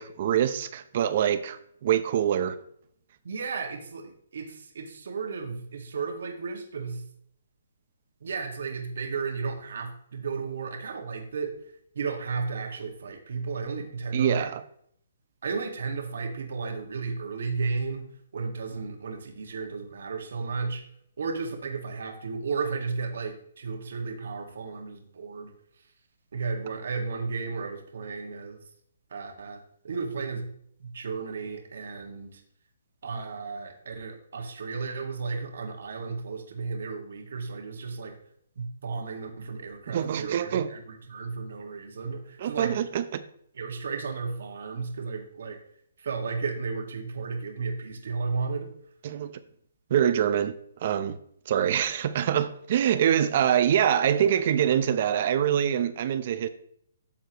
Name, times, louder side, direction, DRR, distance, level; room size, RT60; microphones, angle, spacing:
voice 1, 0.0-2.6 14.1-14.6 39.9-40.7 42.4-43.2 49.0-49.3 49.9-50.5 50.8-51.2 51.5-56.5, right 9 dB, 40° right, 12 dB, 0.8 m, -25 dB
voice 2, 3.2-7.0 8.2-11.6 11.9-14.5 15.4-20.8 21.2-25.5 26.3-28.6 29.1-30.5 30.8-32.4 33.0-38.2 38.6-42.7 43.5-45.6 46.0-48.7, right 4 dB, 70° right, 3 dB, 2.0 m, -34 dB
11.5 x 7.3 x 3.1 m, 0.66 s
hypercardioid pair, 165°, 0 cm